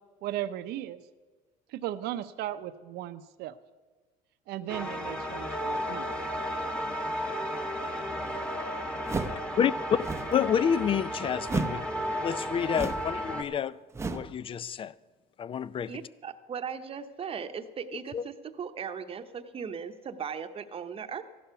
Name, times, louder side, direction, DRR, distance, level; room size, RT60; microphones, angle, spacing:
voice 1, 0.2-1.0 1.7-3.6 4.5-6.1, right 12 dB, 70° right, 0.7 m, -36 dB
sound 1, 4.7-13.4, equal, 5° left, 1.4 m, -34 dB
sound 2, 9.0-9.5 9.9-10.4 11.4-11.9 12.7-13.2 13.9-14.4, right 3 dB, 15° right, 0.7 m, -33 dB
voice 2, 10.3-13.8 14.1-14.9 15.4-16.0 18.1-18.2, left 8 dB, 30° left, 0.4 m, -29 dB
voice 3, 15.9-21.2, right 6 dB, 35° right, 0.9 m, -38 dB
15.0 x 11.5 x 5.8 m
cardioid pair, 110°, 17 cm